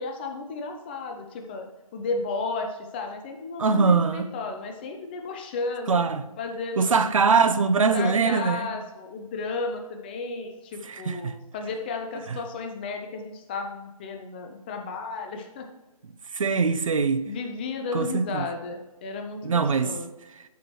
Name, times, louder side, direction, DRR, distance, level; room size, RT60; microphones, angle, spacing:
voice 1, 0.0-5.9 6.4-7.0 7.9-15.7 16.7-16.8 17.2-20.1, left 3 dB, 15° left, 0.5 m, -33 dB
voice 2, 3.6-4.3 5.9-6.2 6.8-8.7 10.9-11.3 12.3-12.4 16.3-17.2 17.9-18.5 19.4-19.9, right 5 dB, 60° right, 0.7 m, -22 dB
12.0 x 4.8 x 3.0 m
figure-of-eight pair, 145°, 19 cm